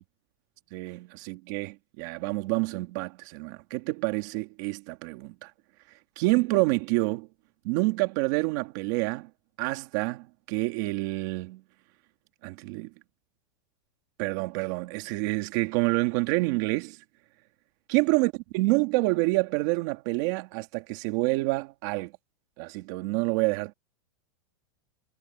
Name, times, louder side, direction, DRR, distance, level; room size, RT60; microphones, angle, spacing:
voice 1, 0.7-5.5 6.2-7.3 7.6-9.3 9.6-11.6 12.4-12.9 14.2-17.0 17.9-22.1 22.6-23.7, right 23 dB, 45° right, 2.4 m, -28 dB
supercardioid pair, 175°, 14 cm